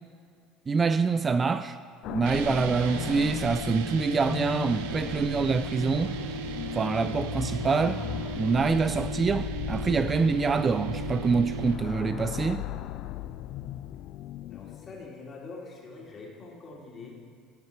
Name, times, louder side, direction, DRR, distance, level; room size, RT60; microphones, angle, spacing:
voice 1, 0.7-1.8 2.1-6.1 6.8-8.0 8.4-12.6, right 4 dB, 25° right, 0.3 m, -26 dB
sound 1, 2.0-15.1, left 12 dB, 60° left, 0.3 m, -37 dB
sound 2, 2.2-11.8, right 5 dB, 80° right, 0.6 m, -36 dB
voice 2, 14.5-17.1, left 3 dB, 35° left, 2.7 m, -44 dB
15.0 x 5.4 x 4.6 m
supercardioid pair, 95°, 0 cm